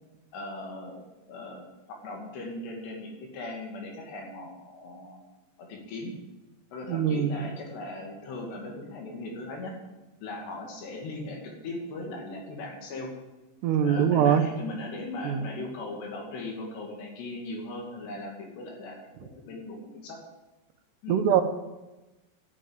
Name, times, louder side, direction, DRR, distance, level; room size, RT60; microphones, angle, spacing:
voice 1, 0.3-1.0 1.3-5.2 5.6-6.2 6.7-9.8 10.2-13.1 13.8-20.2 21.0-21.3, left 2 dB, 85° left, 0 dB, 4.6 m, -38 dB
voice 2, 6.9-7.5 13.6-14.4 15.2-15.5 21.1-21.4, right 8 dB, 85° right, 7 dB, 3.2 m, -23 dB
11.5 x 7.8 x 8.8 m, 1.1 s
omnidirectional pair, 4.7 m